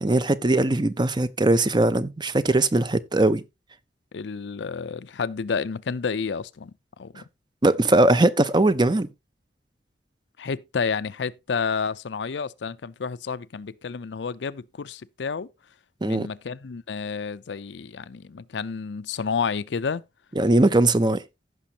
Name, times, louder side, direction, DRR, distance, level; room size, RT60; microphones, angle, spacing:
voice 1, 0.0-3.4 7.6-9.1 16.0-16.3 20.4-21.2, right 2 dB, 25° right, 0.6 m, -20 dB
voice 2, 4.1-7.2 10.4-15.5 16.0-20.0, left 5 dB, 85° left, 0.5 m, -30 dB
15.5 x 6.1 x 2.9 m
head